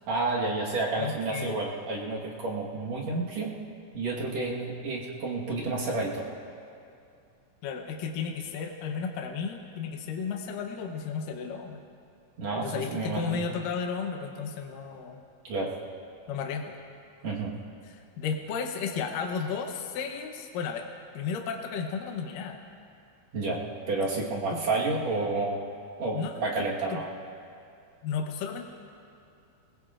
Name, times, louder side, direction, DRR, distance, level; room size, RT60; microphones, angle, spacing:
voice 1, 0.1-3.5 3.9-6.3 12.4-13.5 15.4-15.7 17.2-17.5 23.3-23.6 23.9-25.6 26.0-27.1, right 3 dB, 55° right, -3 dB, 2.3 m, -30 dB
voice 2, 1.0-1.6 7.6-11.8 12.6-15.2 16.3-16.7 17.8-20.9 21.1-22.6 24.5-24.6 26.1-26.7 26.9-27.0 28.0-28.6, left 6 dB, 75° left, 3 dB, 2.5 m, -33 dB
21.0 x 21.0 x 2.5 m, 2.4 s
omnidirectional pair, 4.1 m